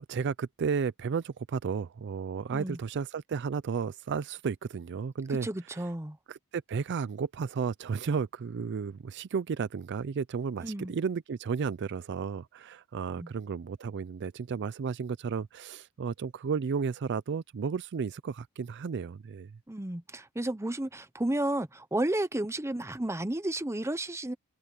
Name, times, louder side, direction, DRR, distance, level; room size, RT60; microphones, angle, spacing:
voice 1, 0.1-5.5 6.3-19.5, right 6 dB, 55° right, 0.4 m, -33 dB
voice 2, 5.3-6.2 10.6-10.9 13.2-13.3 19.7-24.3, right 1 dB, 15° right, 0.8 m, -32 dB
open air
head